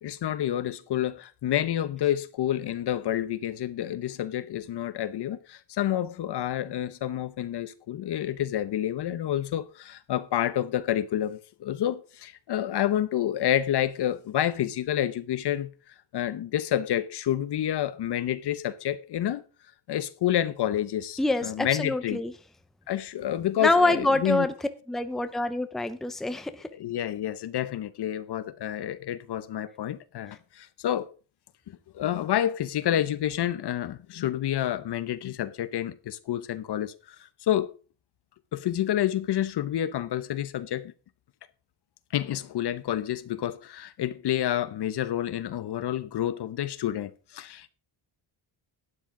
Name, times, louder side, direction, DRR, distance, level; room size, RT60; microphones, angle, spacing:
voice 1, 0.0-19.4 19.9-22.2 22.9-24.5 26.7-31.1 31.7-37.7 38.5-40.9 42.1-47.7, left 11 dB, 55° left, 0.9 m, -29 dB
voice 2, 21.2-22.3 23.6-24.5 24.9-26.7, left 2 dB, ahead, 0.7 m, -25 dB
12.0 x 9.5 x 3.8 m
cardioid pair, 135°, 47 cm